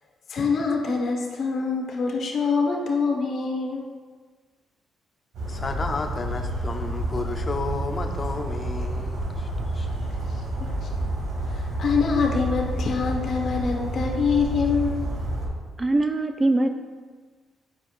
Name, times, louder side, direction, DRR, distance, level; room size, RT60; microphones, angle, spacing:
voice 1, 0.3-3.8 10.6-11.1 11.4-15.1, left 5 dB, 60° left, 0 dB, 1.2 m, -25 dB
Bird vocalization bird call bird song, 5.3-15.5, right 1 dB, 80° right, 1.9 m, -29 dB
voice 2, 5.5-9.9, left 3 dB, 35° left, 5 dB, 0.7 m, -32 dB
voice 3, 15.8-16.7, right 2 dB, 25° right, 7 dB, 0.5 m, -22 dB
8.9 x 4.8 x 2.5 m, 1.5 s
cardioid pair, 90°, 0 cm